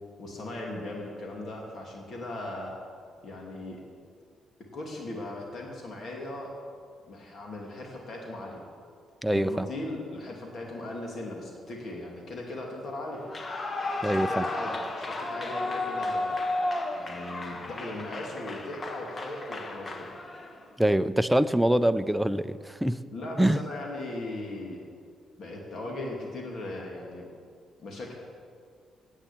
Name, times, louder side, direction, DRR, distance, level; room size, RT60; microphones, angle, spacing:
voice 1, 0.2-2.7 3.2-3.8 4.7-6.5 7.1-8.6 9.3-13.2 14.0-16.4 16.9-20.1 23.1-24.8 25.4-27.3 27.8-28.1, left 2 dB, 55° left, -1 dB, 2.6 m, -38 dB
voice 2, 9.2-9.7 14.0-14.4 20.8-23.0 23.4-23.6, right 1 dB, 5° right, 12 dB, 0.5 m, -24 dB
Clapping / Cheering / Applause, 13.2-20.6, left 2 dB, 30° left, 1.3 m, -33 dB
10.5 x 8.2 x 8.7 m, 2.1 s
cardioid pair, 90°, 0 cm